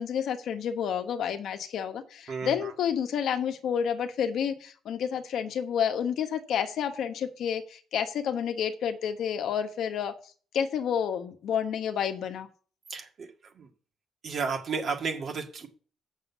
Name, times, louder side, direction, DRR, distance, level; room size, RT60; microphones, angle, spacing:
voice 1, 0.0-10.1 10.5-12.5, left 8 dB, 65° left, 1.2 m, -30 dB
voice 2, 2.3-2.7 12.9-13.3 13.6-13.7 14.2-15.7, right 5 dB, 40° right, 1.8 m, -32 dB
7.8 x 6.6 x 6.9 m
cardioid pair, 145°, 0 cm